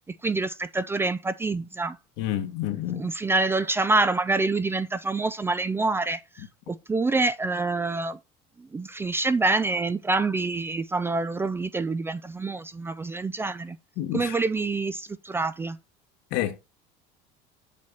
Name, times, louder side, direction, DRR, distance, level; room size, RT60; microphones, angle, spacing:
voice 1, 0.2-2.0 2.9-8.2 8.7-13.8 14.1-15.8, right 3 dB, 10° right, 0.4 m, -26 dB
voice 2, 2.2-3.1 14.0-14.3 16.3-16.6, left 12 dB, 70° left, 1.4 m, -29 dB
7.5 x 4.4 x 5.4 m
cardioid pair, 150°, 19 cm